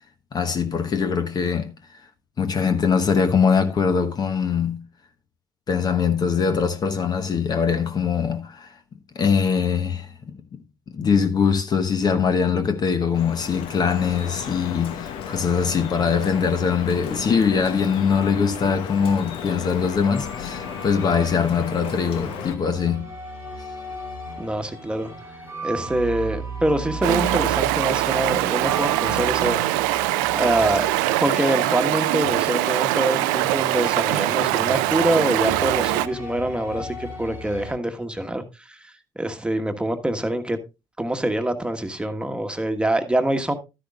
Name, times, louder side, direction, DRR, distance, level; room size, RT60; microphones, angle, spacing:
voice 1, 0.3-1.7 2.4-4.8 5.7-8.7 9.1-10.1 10.5-10.6 10.9-23.1, left 6 dB, 40° left, 1.1 m, -22 dB
Drip, 13.1-22.6, left 8 dB, 65° left, 1.0 m, -34 dB
sound 1, 19.4-37.7, right 2 dB, 85° left, 6.2 m, -36 dB
voice 2, 24.4-25.1 25.6-29.8 30.3-30.9 31.2-40.6 41.0-43.5, right 1 dB, 10° right, 1.4 m, -25 dB
Stream, 27.0-36.1, right 17 dB, 80° right, 0.5 m, -22 dB
12.0 x 10.0 x 2.4 m
hypercardioid pair, 55°, 10 cm